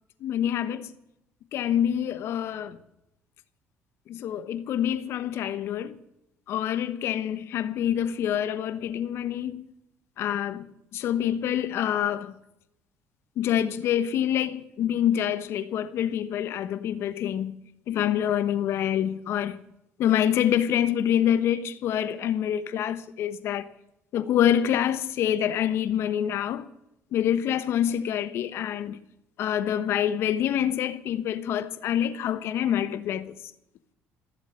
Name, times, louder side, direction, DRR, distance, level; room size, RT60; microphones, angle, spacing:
voice 1, 0.2-0.9 1.5-2.8 4.1-6.0 6.5-9.6 10.2-10.6 10.9-12.3 13.4-17.5 17.9-19.6 20.0-23.6 24.1-26.7 27.1-29.0 29.4-33.3, left 10 dB, 65° left, 1.2 m, -26 dB
15.5 x 7.4 x 9.9 m
supercardioid pair, 75°, 5 cm